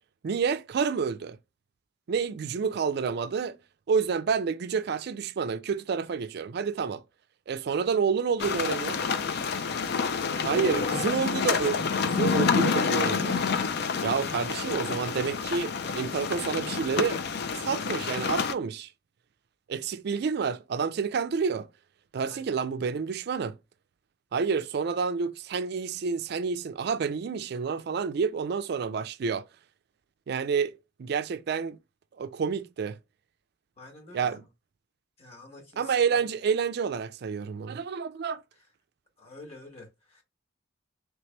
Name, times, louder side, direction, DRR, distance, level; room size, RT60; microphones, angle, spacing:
voice 1, 0.2-1.4 2.1-3.6 3.9-7.0 7.5-9.0 10.4-13.4 14.0-17.2 17.5-18.9 19.7-21.7 22.1-23.6 24.3-29.4 30.3-31.8 32.2-33.0 34.1-34.4 35.8-38.4, right 6 dB, 55° right, 0.4 m, -29 dB
sound 1, 8.4-18.5, left 5 dB, 60° left, 0.4 m, -28 dB
voice 2, 22.2-22.8 33.8-34.5 35.2-36.4 38.5-38.7 39.2-40.2, left 2 dB, 35° left, 1.2 m, -48 dB
3.3 x 2.9 x 3.2 m
head